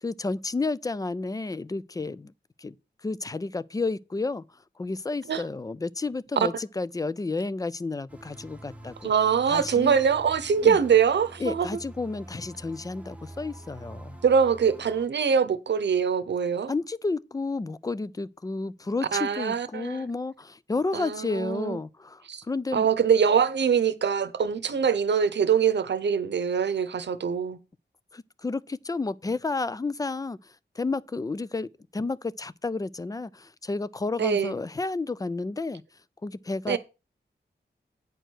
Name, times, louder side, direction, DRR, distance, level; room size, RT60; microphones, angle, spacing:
voice 1, 0.0-2.3 2.6-2.7 3.0-4.4 4.8-9.1 9.5-10.0 10.6-10.8 11.4-14.2 16.7-22.9 28.1-35.8 36.2-36.8, left 3 dB, 20° left, 0.3 m, -31 dB
sound 1, 8.1-15.1, right 1 dB, 5° right, 0.9 m, -46 dB
voice 2, 9.0-11.7 14.2-16.7 19.1-20.0 20.9-21.8 22.3-22.4 22.7-27.6 34.2-34.5 36.7-36.8, right 7 dB, 70° right, 0.8 m, -23 dB
9.0 x 4.6 x 6.2 m
wide cardioid pair, 125°, 19 cm